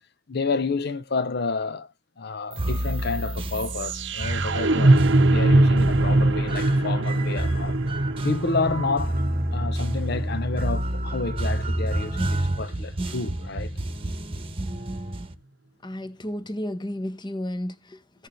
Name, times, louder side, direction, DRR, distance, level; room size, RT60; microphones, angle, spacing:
voice 1, 0.3-1.9 2.2-5.0 5.3-7.8 8.2-9.2 9.5-13.7, left 4 dB, 60° left, 0.8 m, -29 dB
sound 1, 2.5-12.5, right 2 dB, 65° right, 0.8 m, -23 dB
sound 2, 2.6-15.3, right 1 dB, 30° right, 1.1 m, -29 dB
voice 2, 15.8-18.3, left 1 dB, 25° left, 1.1 m, -33 dB
15.5 x 6.5 x 3.2 m
head